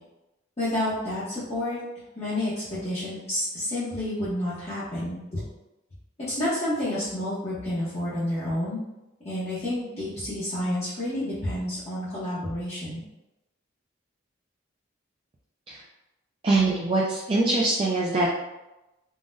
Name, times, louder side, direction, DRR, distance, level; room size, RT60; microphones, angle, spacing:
voice 1, 0.6-1.8 2.2-5.4 6.2-8.8 9.2-13.0, left 1 dB, 30° left, -12 dB, 0.8 m, -29 dB
voice 2, 16.4-18.3, right 2 dB, 30° right, -3 dB, 0.3 m, -23 dB
3.7 x 2.1 x 2.5 m, 0.98 s
head